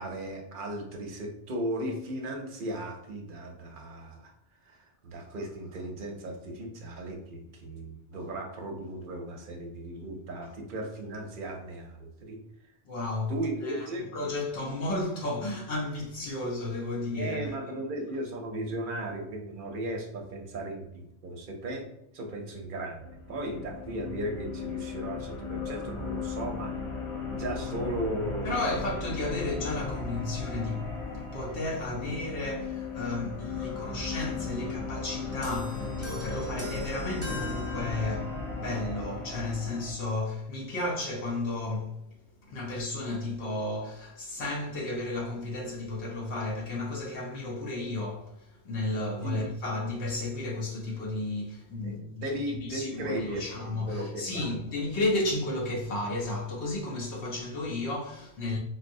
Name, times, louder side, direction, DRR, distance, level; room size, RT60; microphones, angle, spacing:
voice 1, 0.0-4.3 4.6-12.4 13.3-14.1 17.2-26.8 27.3-28.9 49.2-49.4 51.8-54.6, right 1 dB, 55° right, 0.7 m, -36 dB
voice 2, 12.8-13.3 13.6-13.9 14.1-17.5 28.4-42.0 42.5-48.3 48.6-58.6, left 2 dB, 75° left, 0.9 m, -33 dB
sound 1, 22.9-39.9, left 4 dB, 55° left, 0.3 m, -36 dB
sound 2, 35.4-38.6, left 1 dB, 20° right, 0.4 m, -41 dB
4.1 x 2.0 x 2.6 m
omnidirectional pair, 1.1 m